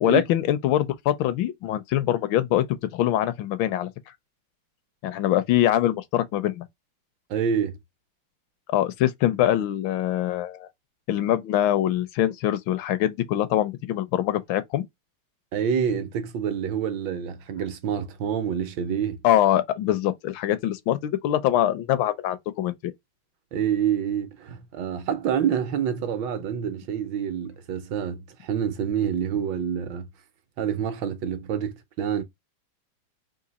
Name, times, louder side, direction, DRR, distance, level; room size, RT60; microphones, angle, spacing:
voice 1, 0.0-3.9 5.0-6.6 8.7-10.7 11.1-14.8 19.2-22.9, left 12 dB, 75° left, 1.3 m, -23 dB
voice 2, 7.3-7.8 15.5-19.2 23.5-30.1 30.6-32.2, right 8 dB, 70° right, 1.3 m, -27 dB
3.8 x 2.7 x 3.9 m
omnidirectional pair, 2.2 m